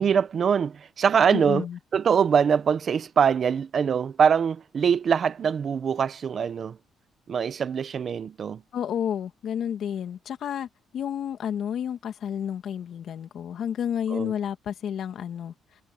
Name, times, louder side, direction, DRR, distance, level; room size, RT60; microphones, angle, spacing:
voice 1, 0.0-1.6 1.9-6.8 7.3-8.6 14.1-14.3, right 7 dB, 50° right, 1.1 m, -23 dB
voice 2, 1.3-1.8 8.7-10.7 10.9-15.5, left 9 dB, 65° left, 2.3 m, -30 dB
cardioid pair, 90°, 0 cm